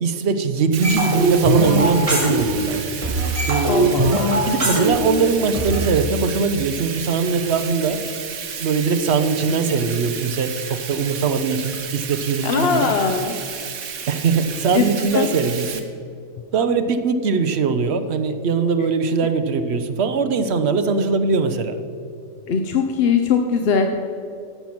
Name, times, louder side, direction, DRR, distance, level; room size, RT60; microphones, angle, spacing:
voice 1, 0.0-2.8 3.5-4.0 4.4-8.0 8.6-10.5 10.9-12.9 14.1-15.8 16.5-21.8, right 5 dB, 55° right, 9 dB, 0.9 m, -21 dB
Bathtub (filling or washing), 0.7-15.8, right 7 dB, 80° right, 1.4 m, -32 dB
sound 1, 0.8-2.8 3.0-5.8, right 1 dB, 25° right, 2.6 m, -20 dB
voice 2, 3.7-4.2 9.5-9.7 12.4-13.4 14.7-15.3 22.5-24.1, left 6 dB, 55° left, 5 dB, 0.8 m, -21 dB
11.5 x 7.1 x 6.0 m, 2.5 s
omnidirectional pair, 1.4 m